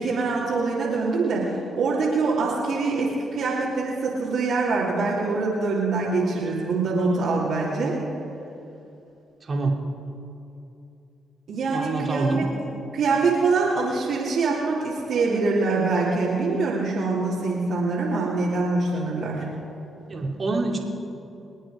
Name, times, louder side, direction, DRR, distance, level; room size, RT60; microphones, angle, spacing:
voice 1, 0.0-8.0 11.5-12.3 12.9-19.5, right 3 dB, 70° right, -7 dB, 3.1 m, -24 dB
voice 2, 9.4-9.8 11.7-12.4 20.1-20.8, right 3 dB, 45° right, 1 dB, 2.8 m, -26 dB
25.5 x 9.0 x 5.1 m, 2.8 s
supercardioid pair, 50°, 0 cm